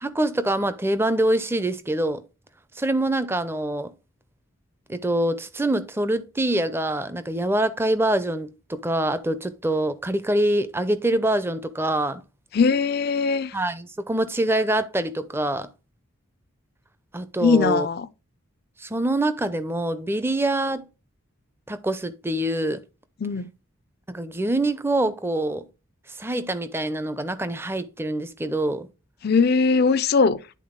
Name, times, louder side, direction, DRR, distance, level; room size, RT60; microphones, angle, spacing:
voice 1, 0.0-2.2 2.8-3.9 4.9-12.2 13.5-15.7 17.1-17.9 18.8-20.9 21.7-22.8 24.1-25.7 26.1-28.9, right 1 dB, 10° right, 0.5 m, -25 dB
voice 2, 12.5-13.5 17.4-18.1 23.2-23.5 29.2-30.4, left 4 dB, 45° left, 0.4 m, -20 dB
10.5 x 3.9 x 3.7 m
head